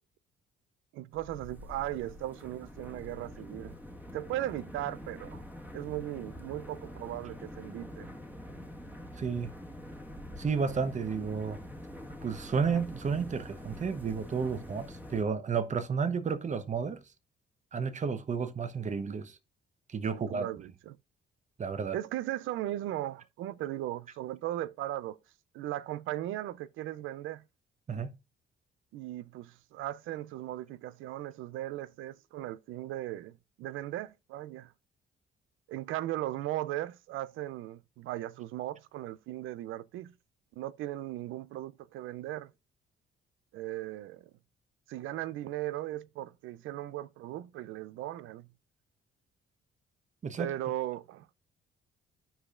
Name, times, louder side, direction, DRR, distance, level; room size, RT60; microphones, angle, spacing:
voice 1, 0.9-3.8 4.1-5.4 5.7-8.1 20.3-21.0 21.9-25.2 25.5-27.4 28.9-34.7 35.7-40.1 40.5-42.5 43.5-44.3 44.9-48.5 50.4-51.3, right 14 dB, 90° right, 0.4 m, -37 dB
sound 1, 1.1-15.2, left 1 dB, 10° right, 1.4 m, -45 dB
voice 2, 9.2-9.5 10.4-11.6 12.2-17.0 17.7-19.4 19.9-20.5 21.6-22.0 27.9-28.1 50.2-50.5, right 6 dB, 35° right, 0.9 m, -32 dB
15.0 x 4.9 x 2.4 m
cardioid pair, 90°, 20 cm